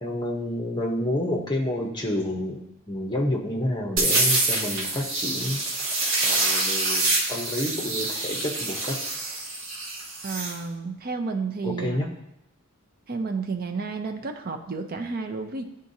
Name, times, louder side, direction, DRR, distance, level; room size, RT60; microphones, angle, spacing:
voice 1, 0.0-2.6 2.9-5.6 6.2-9.0 11.6-12.1, left 1 dB, 20° left, 0 dB, 0.8 m, -29 dB
sound 1, 4.0-10.5, right 2 dB, 65° right, 1.3 m, -26 dB
voice 2, 10.2-12.1 13.1-15.6, right 4 dB, 45° right, 6 dB, 0.5 m, -31 dB
11.0 x 3.7 x 2.7 m, 0.81 s
head